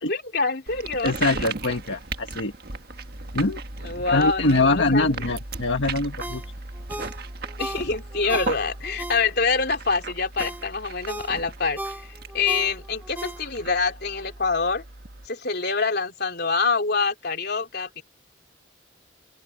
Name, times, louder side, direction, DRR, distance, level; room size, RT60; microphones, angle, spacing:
voice 1, 0.1-1.5 3.8-5.1 7.6-14.8 15.3-18.0, left 4 dB, 55° left, 3.6 m, -26 dB
sound 1, 0.7-15.3, right 3 dB, 55° right, 1.6 m, -36 dB
voice 2, 1.0-2.5 3.3-3.6 4.1-6.4, left 2 dB, 75° left, 1.5 m, -23 dB
Ringtone, 6.2-9.6 10.1-13.8 14.2-14.3, right 1 dB, 10° right, 1.3 m, -37 dB
open air
head